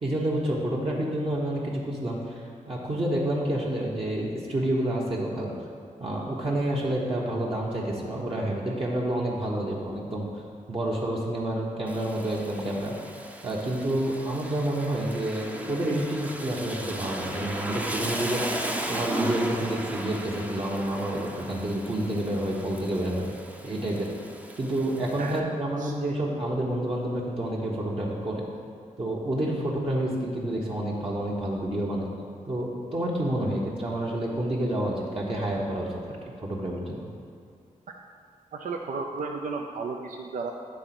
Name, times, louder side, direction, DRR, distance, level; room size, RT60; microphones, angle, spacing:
voice 1, 0.0-5.5 6.0-10.4 10.7-12.9 13.4-18.4 18.9-23.3 23.6-24.1 24.6-28.4 29.0-32.1 32.5-37.1, right 1 dB, 45° right, -4 dB, 1.1 m, -29 dB
Rain, 11.9-25.4, right 1 dB, 10° right, 0.6 m, -36 dB
voice 2, 38.5-40.5, right 4 dB, 75° right, 2 dB, 0.5 m, -33 dB
9.7 x 3.8 x 6.0 m, 2.3 s
wide cardioid pair, 105°, 14 cm